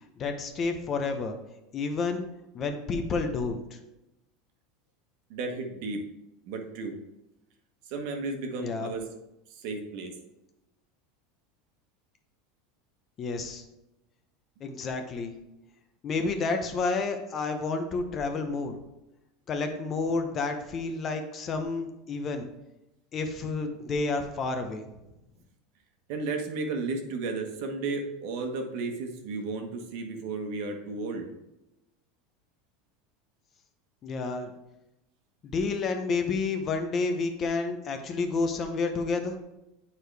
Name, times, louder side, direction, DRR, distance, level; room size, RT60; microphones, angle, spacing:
voice 1, 0.2-1.3 1.7-2.2 2.5-3.8 8.6-8.9 13.2-13.6 14.6-15.3 16.0-18.8 19.5-22.5 23.1-24.9 34.0-34.5 35.4-39.4, left 4 dB, 30° left, 6 dB, 0.8 m, -30 dB
voice 2, 5.3-6.0 6.5-6.9 7.9-9.0 9.5-10.2 26.1-31.3, right 3 dB, 60° right, 4 dB, 1.2 m, -33 dB
8.5 x 4.7 x 3.4 m, 0.92 s
supercardioid pair, 150°, 0 cm